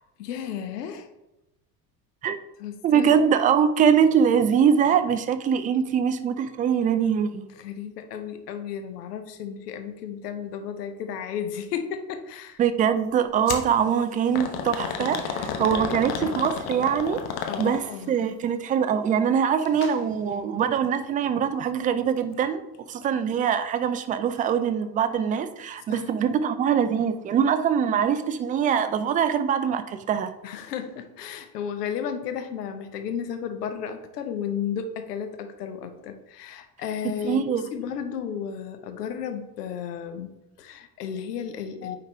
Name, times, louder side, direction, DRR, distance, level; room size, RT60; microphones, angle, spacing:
voice 1, 0.2-1.1 2.6-3.2 7.5-12.6 17.5-18.2 25.9-26.1 30.4-42.0, left 8 dB, 70° left, 8 dB, 0.9 m, -33 dB
voice 2, 2.8-7.5 12.6-17.2 17.6-22.6 22.9-30.3 37.0-37.6, right 7 dB, 20° right, 11 dB, 0.3 m, -23 dB
sound 1, 13.5-13.7 14.3-18.0 19.6-20.0 20.3-20.4 21.3-21.4, left 7 dB, 50° left, 1.0 m, -31 dB
9.1 x 3.8 x 3.4 m, 0.91 s
figure-of-eight pair, 60°, 49 cm